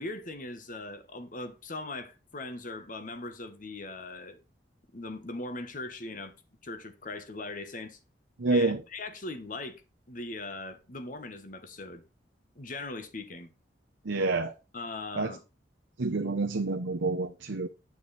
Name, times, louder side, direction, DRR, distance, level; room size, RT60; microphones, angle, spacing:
voice 1, 0.0-4.4 4.9-6.3 6.6-8.0 8.5-9.8 10.1-12.0 12.5-13.5 14.7-15.4, left 2 dB, 45° left, 1.3 m, -40 dB
voice 2, 8.4-8.8 14.0-14.5 15.2-15.3 16.0-17.7, right 3 dB, 90° right, 0.8 m, -28 dB
9.2 x 6.3 x 4.1 m
head